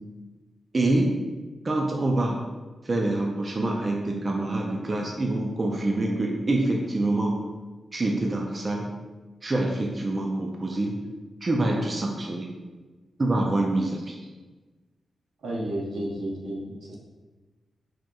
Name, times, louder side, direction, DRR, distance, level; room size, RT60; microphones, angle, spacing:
voice 1, 0.7-1.1 1.6-2.4 2.8-7.4 7.9-8.9 9.4-11.0 11.4-12.5 13.2-14.2, right 2 dB, 35° right, 0 dB, 0.4 m, -26 dB
voice 2, 15.4-17.0, right 1 dB, 80° right, -3 dB, 0.8 m, -32 dB
4.9 x 2.9 x 2.3 m, 1.3 s
cardioid pair, 90°, 0 cm